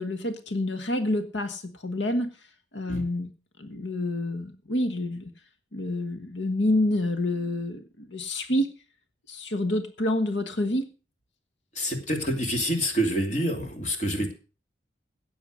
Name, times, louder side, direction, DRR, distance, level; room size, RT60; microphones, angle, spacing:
voice 1, 0.0-2.5 2.7-3.3 3.6-5.3 5.7-8.7 9.3-10.9, left 1 dB, 85° left, 8 dB, 1.4 m, -28 dB
voice 2, 11.7-14.3, equal, 40° left, 4 dB, 2.8 m, -27 dB
17.0 x 7.1 x 6.3 m, 0.36 s
head